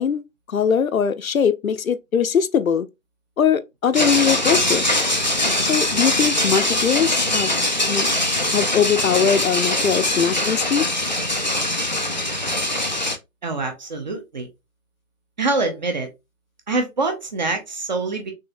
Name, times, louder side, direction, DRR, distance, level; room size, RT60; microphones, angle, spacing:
voice 1, 0.0-2.9 3.4-4.9 5.7-7.5 7.9-8.0 8.5-10.9, left 7 dB, 70° left, 0.8 m, -21 dB
sound 1, 3.9-13.2, left 1 dB, 35° left, 0.4 m, -22 dB
voice 2, 13.4-14.5 15.4-16.1 16.7-18.3, right 3 dB, 30° right, 0.9 m, -25 dB
6.3 x 2.7 x 2.6 m
figure-of-eight pair, 150°, 43 cm